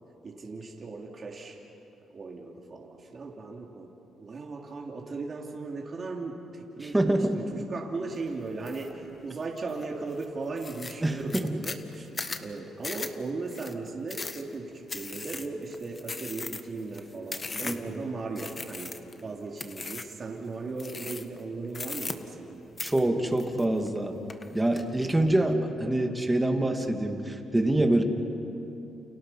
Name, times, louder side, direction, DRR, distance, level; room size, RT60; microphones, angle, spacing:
voice 1, 0.2-1.6 2.1-19.0 19.2-22.7, right 3 dB, 40° right, -1 dB, 3.1 m, -37 dB
voice 2, 6.8-7.4 11.0-11.6 17.6-18.0 22.8-24.1 24.5-28.0, right 1 dB, 10° right, 3 dB, 2.6 m, -26 dB
sound 1, 8.7-8.9 9.4-9.8 10.2-10.3 10.6-18.0 18.4-19.2 19.6-20.2 20.8-21.4 21.7-22.5 22.8-24.0 24.3-24.8, left 3 dB, 30° left, 1.5 m, -38 dB
29.5 x 29.5 x 5.8 m, 2.9 s
cardioid pair, 90°, 0 cm